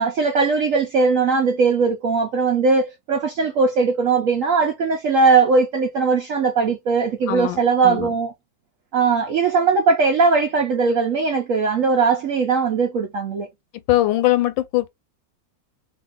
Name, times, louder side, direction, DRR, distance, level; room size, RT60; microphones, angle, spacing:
voice 1, 0.0-8.3 8.9-13.5, right 4 dB, 70° right, 0.7 m, -19 dB
voice 2, 7.3-8.1 13.9-14.9, left 15 dB, 90° left, 1.3 m, -21 dB
2.7 x 2.6 x 3.6 m
omnidirectional pair, 2.0 m